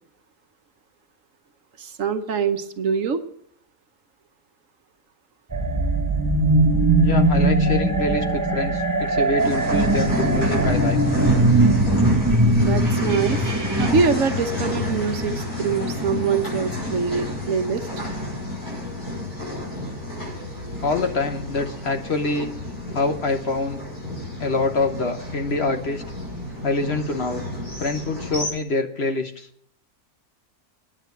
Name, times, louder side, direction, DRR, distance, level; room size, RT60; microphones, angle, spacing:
voice 1, 1.8-3.2 12.6-17.9, right 6 dB, 60° right, 8 dB, 1.2 m, -24 dB
sound 1, 5.5-13.9, right 2 dB, 20° right, 0.6 m, -20 dB
voice 2, 7.0-11.0 20.8-22.5 22.9-23.8 24.4-26.0 26.6-27.4 27.8-29.5, left 3 dB, 50° left, 5 dB, 1.2 m, -25 dB
sound 2, 9.4-28.5, left 2 dB, 80° left, 7.3 m, -30 dB
10.0 x 9.2 x 7.9 m, 0.67 s
omnidirectional pair, 1.6 m